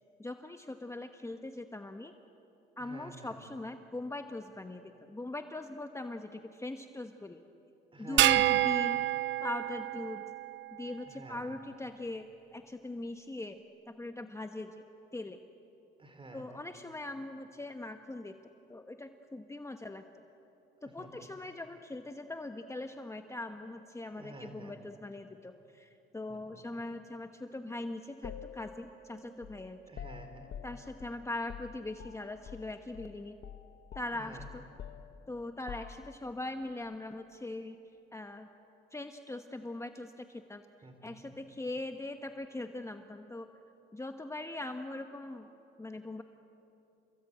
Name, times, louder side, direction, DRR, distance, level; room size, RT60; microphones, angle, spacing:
voice 1, 0.2-2.2 2.8-7.4 8.0-9.0 9.4-10.3 10.7-14.8 15.1-15.4 16.3-18.4 18.7-20.1 20.8-29.8 30.6-33.4 33.9-34.6 35.3-37.8 38.1-38.5 38.9-40.6 41.0-43.5 43.9-45.5 45.8-46.2, left 2 dB, 15° left, 6 dB, 1.1 m, -41 dB
voice 2, 2.8-3.4 7.9-8.6 11.0-11.4 16.0-16.6 20.8-21.3 24.1-24.7 26.3-26.6 29.9-30.5 34.1-34.5 40.8-41.3, right 2 dB, 25° right, 6 dB, 4.4 m, -50 dB
sound 1, 8.2-10.7, right 14 dB, 70° right, 0.5 m, -28 dB
sound 2, 28.2-32.7 32.9-33.2 33.4-36.4, left 8 dB, 60° left, 1.2 m, -48 dB
29.5 x 20.5 x 8.9 m, 2.9 s
cardioid pair, 90°, 20 cm